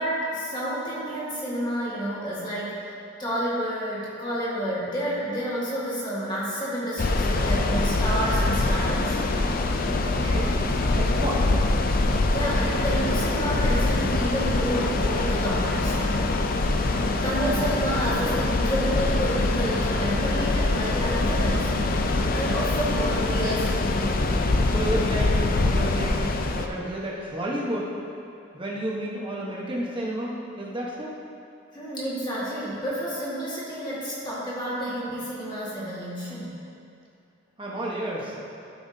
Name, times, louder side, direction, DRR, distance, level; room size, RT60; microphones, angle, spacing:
voice 1, 0.0-9.2 12.3-16.3 16.8-21.7 22.3-23.8 31.7-36.6, equal, 20° left, -8 dB, 1.8 m, -30 dB
sound 1, 7.0-26.7, left 2 dB, 45° left, 0.4 m, -24 dB
voice 2, 10.0-10.5 10.9-11.4 24.4-26.2 26.5-27.9 28.5-31.1 37.6-38.4, right 1 dB, 25° right, -4 dB, 1.1 m, -31 dB
12.5 x 5.9 x 2.8 m, 2.6 s
head